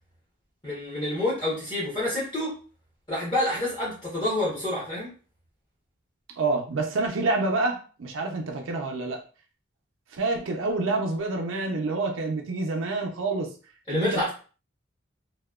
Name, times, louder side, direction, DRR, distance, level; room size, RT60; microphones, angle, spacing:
voice 1, 0.6-2.6 3.1-5.1 13.9-14.3, left 1 dB, 25° left, -7 dB, 0.8 m, -28 dB
voice 2, 6.4-9.2 10.1-13.5 13.9-14.3, right 3 dB, 80° right, 3 dB, 0.5 m, -27 dB
2.8 x 2.1 x 2.2 m, 0.37 s
head